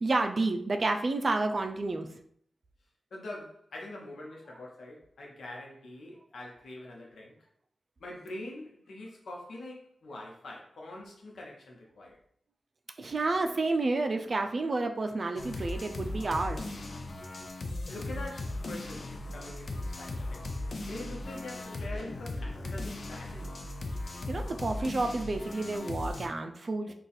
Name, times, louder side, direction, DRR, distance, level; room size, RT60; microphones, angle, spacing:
voice 1, 0.0-2.1 13.0-16.6 24.3-26.9, right 2 dB, 60° right, 0.4 m, -30 dB
voice 2, 3.1-7.3 8.0-12.2 17.9-20.5 20.8-23.5, left 1 dB, 85° left, 0.8 m, -44 dB
sound 1, 15.4-26.3, left 2 dB, 65° left, 0.5 m, -37 dB
2.6 x 2.3 x 4.0 m
cardioid pair, 40°, 0 cm